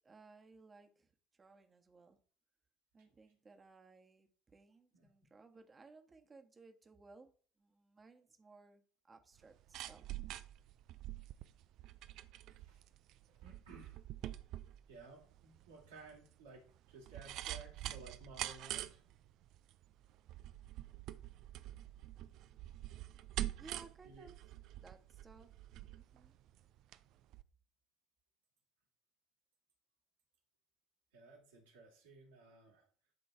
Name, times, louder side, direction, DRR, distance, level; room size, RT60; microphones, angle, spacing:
voice 1, 0.0-2.2 2.9-10.0 23.6-24.3 24.8-25.5 25.9-26.4, right 4 dB, 25° right, 1.4 m, -60 dB
sound 1, 9.4-27.0 27.3-27.4, right 14 dB, 55° right, 0.4 m, -46 dB
voice 2, 13.3-14.0 14.9-19.0 24.0-24.3 31.1-32.8, right 3 dB, 75° right, 2.5 m, -57 dB
11.0 x 3.8 x 4.6 m
figure-of-eight pair, 55°, 0 cm